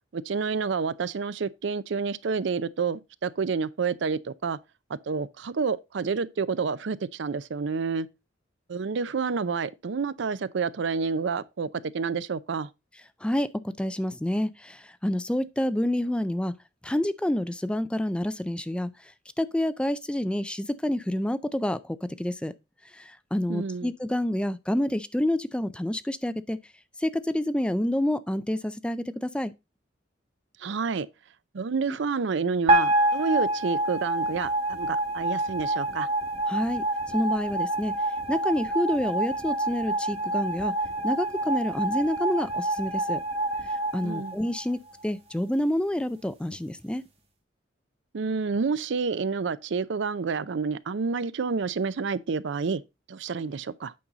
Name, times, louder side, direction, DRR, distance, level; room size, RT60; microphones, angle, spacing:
voice 1, 0.1-4.6 4.9-8.1 8.7-11.7 11.9-12.7 23.5-23.9 30.6-31.1 31.5-36.1 44.0-44.4 48.1-52.8 53.1-53.9, right 5 dB, 65° right, 0.5 m, -29 dB
voice 2, 13.2-16.5 16.8-18.9 19.4-22.5 23.0-26.6 27.0-29.5 36.5-36.8 37.1-38.0 38.3-40.7 41.0-43.2 43.9-47.0, left 1 dB, 5° left, 0.4 m, -28 dB
sound 1, 32.7-45.0, right 1 dB, 30° right, 1.8 m, -27 dB
8.6 x 5.5 x 3.8 m
head